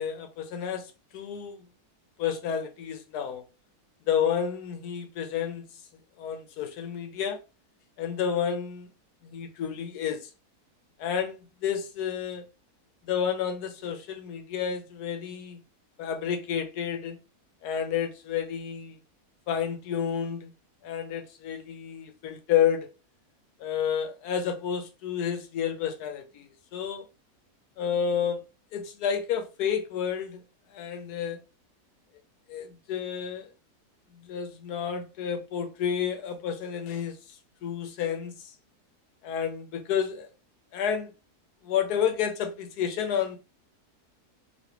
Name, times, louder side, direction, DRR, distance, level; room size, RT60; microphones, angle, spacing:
voice 1, 0.0-1.6 2.2-3.4 4.1-5.7 6.2-7.4 8.0-8.9 9.2-10.3 11.0-12.4 13.1-15.6 16.0-17.2 17.6-19.0 19.5-20.5 20.8-22.9 23.6-27.1 27.8-28.4 28.7-30.4 30.7-31.4 32.5-33.5 34.2-37.2 37.6-38.3 39.2-40.3 40.7-41.1 41.6-43.4, left 8 dB, 85° left, 1.2 m, -30 dB
3.1 x 2.7 x 2.8 m
omnidirectional pair, 1.7 m